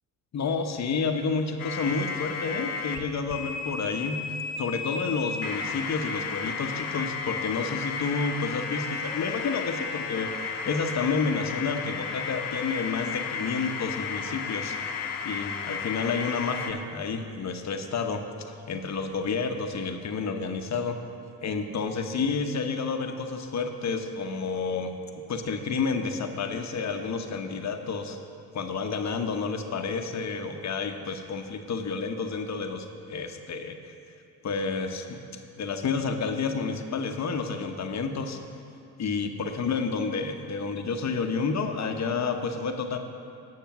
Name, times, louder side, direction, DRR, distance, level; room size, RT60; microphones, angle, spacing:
voice 1, 0.3-14.8 15.2-21.0 21.4-28.2 28.5-33.9 34.4-35.2 35.6-38.4 39.0-43.0, left 4 dB, 45° left, 5 dB, 0.9 m, -30 dB
sound 1, 1.6-3.0 3.3-16.7, left 5 dB, 65° left, 1.0 m, -33 dB
10.5 x 6.6 x 5.9 m, 2.4 s
supercardioid pair, 75°, 38 cm